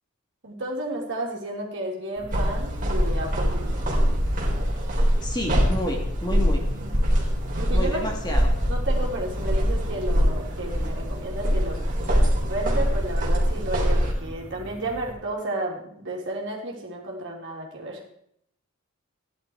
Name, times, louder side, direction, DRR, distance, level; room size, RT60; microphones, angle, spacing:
voice 1, 0.4-3.8 7.6-8.0 8.7-11.8 12.5-18.0, right 1 dB, 55° right, -1 dB, 3.4 m, -32 dB
sound 1, 2.2-15.1, right 1 dB, 20° right, 3.4 m, -42 dB
sound 2, 2.3-14.1, equal, 40° right, 3.7 m, -23 dB
voice 2, 5.2-6.6 7.7-8.5, equal, 20° left, 1 dB, 2.5 m, -30 dB
15.5 x 11.0 x 4.8 m, 0.73 s
head